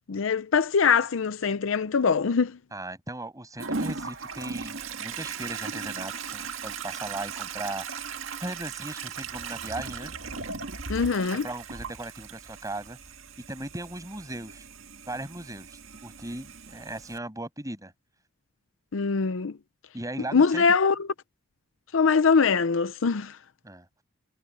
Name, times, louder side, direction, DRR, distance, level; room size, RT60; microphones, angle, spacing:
voice 1, 0.1-2.5 10.9-11.4 18.9-19.5 20.3-20.9 21.9-23.3, left 5 dB, 75° left, 0.6 m, -22 dB
voice 2, 2.7-7.8 8.4-10.1 11.2-13.0 13.5-14.6 15.1-17.9 19.9-20.7 23.6-23.9, right 1 dB, 15° right, 7.6 m, -37 dB
Toilet flush, 3.6-17.2, right 5 dB, 90° right, 1.8 m, -38 dB
head